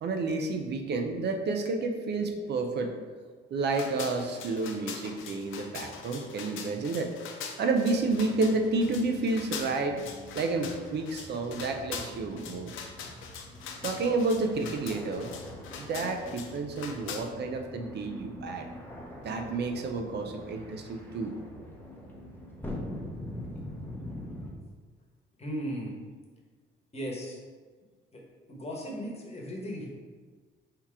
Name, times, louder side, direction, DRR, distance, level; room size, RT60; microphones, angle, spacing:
voice 1, 0.0-2.9 3.5-7.1 7.6-10.0 10.3-12.7 13.8-15.3 15.8-18.7 19.2-21.4, right 3 dB, 60° right, 4 dB, 0.5 m, -30 dB
sound 1, 3.7-17.2, left 6 dB, 85° left, 0.6 m, -42 dB
sound 2, 7.9-24.5, left 1 dB, 10° left, 0.8 m, -44 dB
voice 2, 25.4-25.9 26.9-27.4 28.1-28.2 28.5-29.9, equal, 30° left, -2 dB, 1.1 m, -36 dB
3.6 x 2.9 x 4.6 m, 1.5 s
cardioid pair, 90°, 20 cm